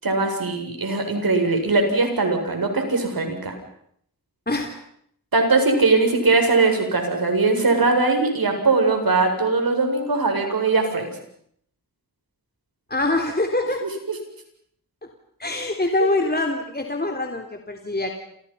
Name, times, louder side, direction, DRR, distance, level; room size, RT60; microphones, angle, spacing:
voice 1, 0.0-3.5 5.3-11.1 13.8-14.2 16.0-16.1, right 3 dB, 70° right, 4 dB, 7.5 m, -20 dB
voice 2, 4.5-4.8 12.9-13.8 15.4-18.1, left 2 dB, 25° left, 3 dB, 3.7 m, -24 dB
29.0 x 29.0 x 5.8 m, 0.69 s
cardioid pair, 55°, 36 cm